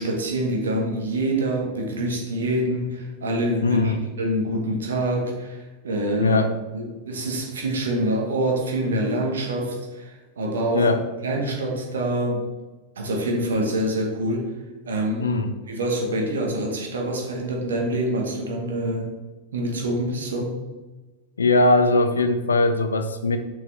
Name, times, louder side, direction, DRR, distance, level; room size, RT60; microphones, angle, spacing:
voice 1, 0.0-6.4 6.7-10.9 11.2-12.4 13.0-14.5 14.9-15.4 15.7-19.1 19.5-20.5, right 1 dB, 65° right, 0 dB, 1.3 m, -26 dB
voice 2, 3.6-4.0 6.2-6.5 10.7-11.0 15.2-15.5 21.4-23.4, left 2 dB, 70° left, 8 dB, 0.6 m, -20 dB
6.3 x 5.6 x 3.3 m, 1.2 s
figure-of-eight pair, 90°, 0 cm